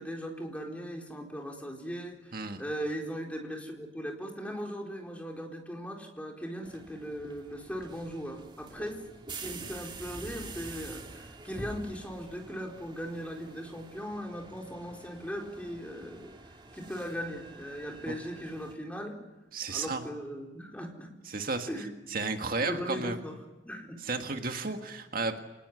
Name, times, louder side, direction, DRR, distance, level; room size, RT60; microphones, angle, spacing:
voice 1, 0.0-9.0 9.4-16.3 16.7-19.2 19.7-21.1 21.7-21.9 22.6-23.4 23.7-24.0, equal, 10° left, 1 dB, 4.3 m, -38 dB
sound 1, 6.6-18.7, right 3 dB, 25° right, 2.2 m, -47 dB
voice 2, 19.5-20.0 21.3-21.7 22.1-23.2 24.0-25.4, right 3 dB, 55° right, 5 dB, 1.8 m, -33 dB
27.5 x 19.5 x 9.7 m, 1.1 s
head